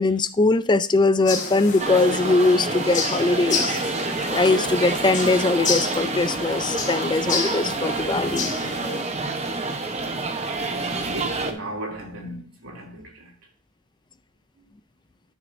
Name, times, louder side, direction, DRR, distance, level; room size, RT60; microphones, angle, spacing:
voice 1, 0.0-3.8 4.3-8.6, left 3 dB, 20° left, 0.4 m, -21 dB
sound 1, 1.3-9.0, left 4 dB, 40° left, 1.4 m, -30 dB
sound 2, 1.8-11.5, right 3 dB, 30° right, 0.9 m, -28 dB
voice 2, 10.7-13.3 14.6-14.7, right 1 dB, 90° right, 2.8 m, -35 dB
12.5 x 6.3 x 2.6 m
head